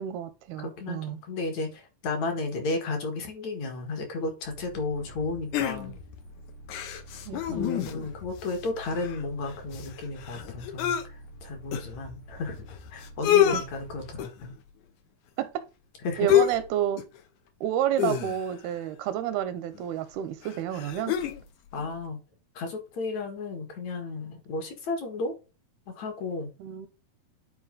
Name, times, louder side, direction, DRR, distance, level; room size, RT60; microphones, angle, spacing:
voice 1, 0.0-1.2 7.3-7.9 13.5-13.6 15.4-15.7 16.2-17.0 17.6-21.2 26.6-26.9, right 11 dB, 85° right, 2.5 m, -30 dB
voice 2, 0.6-5.9 7.3-14.5 16.0-16.3 21.7-22.2 22.5-25.3 25.9-26.5, left 3 dB, 55° left, 2.5 m, -33 dB
sound 1, 4.4-14.2, equal, 90° left, 4.2 m, -47 dB
sound 2, 5.5-6.2 6.7-8.1 8.5-8.6 8.8-11.0 11.7-11.8 12.7-12.8 13.0-13.6 14.2-14.5 16.3-16.7 17.0-17.2 18.0-18.7 19.7-19.8 20.4-21.4 21.8-21.9, left 11 dB, 75° left, 1.8 m, -27 dB
9.7 x 4.4 x 3.8 m
omnidirectional pair, 4.5 m